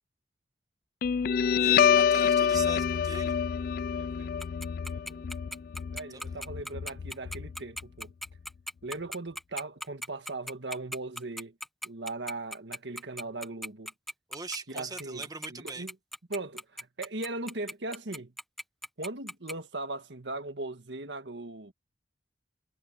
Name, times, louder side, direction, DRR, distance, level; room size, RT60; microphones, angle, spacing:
Guitar, 1.0-8.0, left 7 dB, 55° left, 0.3 m, -27 dB
voice 1, 1.6-3.4 6.1-6.4 14.3-15.9, right 4 dB, 20° right, 1.5 m, -40 dB
voice 2, 3.9-4.3 4.9-5.3 5.9-8.1 8.8-11.5 11.8-13.9 14.7-15.9 16.3-18.3 19.0-21.7, right 2 dB, 80° right, 1.7 m, -39 dB
Tick-tock, 4.4-19.5, equal, ahead, 1.0 m, -38 dB
head